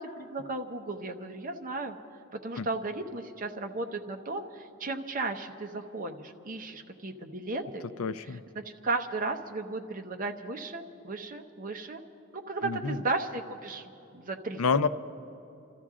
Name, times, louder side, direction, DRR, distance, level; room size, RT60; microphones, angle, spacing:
voice 1, 0.0-2.0 2.3-7.8 8.5-12.0 12.3-14.9, right 3 dB, 40° right, 4 dB, 0.9 m, -35 dB
voice 2, 8.0-8.4 12.6-13.0 14.6-14.9, left 5 dB, 70° left, 13 dB, 0.5 m, -28 dB
28.0 x 14.0 x 3.7 m, 2.8 s
head